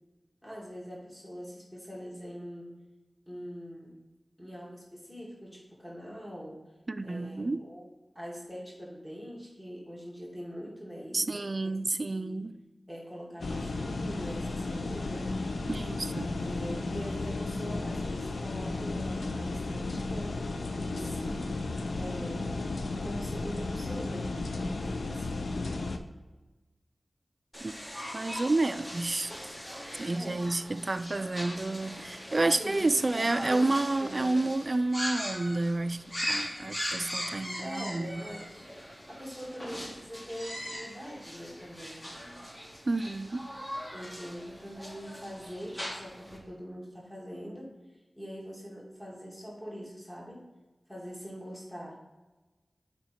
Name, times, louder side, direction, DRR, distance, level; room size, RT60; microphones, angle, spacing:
voice 1, 0.4-2.7 3.3-4.0 4.4-6.6 7.0-11.7 12.1-12.4 12.9-15.3 16.4-20.4 20.8-21.5 21.9-22.5 23.0-25.4 30.1-30.4 32.4-34.4 37.6-42.0 43.9-47.7 48.2-50.5 50.9-52.0, equal, 5° left, 2.0 m, -43 dB
voice 2, 6.9-7.6 11.1-12.6 15.7-16.3 27.6-27.8 28.1-29.4 30.0-38.2 42.9-43.5, right 2 dB, 50° right, 0.3 m, -30 dB
sound 1, 13.4-26.0, left 2 dB, 85° left, 0.5 m, -34 dB
sound 2, 27.5-46.4, equal, 20° left, 2.0 m, -40 dB
7.2 x 5.0 x 4.3 m
wide cardioid pair, 55°, 0 cm